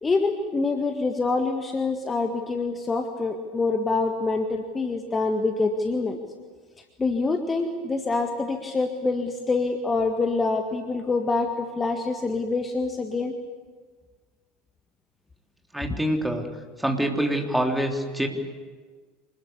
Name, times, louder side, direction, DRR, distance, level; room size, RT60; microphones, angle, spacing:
voice 1, 0.0-6.2 7.0-13.3 15.9-16.0, left 3 dB, 20° left, 5 dB, 1.8 m, -26 dB
voice 2, 15.7-16.5 16.8-18.3, right 1 dB, 5° right, 2 dB, 3.4 m, -25 dB
26.0 x 21.0 x 8.4 m, 1.5 s
figure-of-eight pair, 75°, 0 cm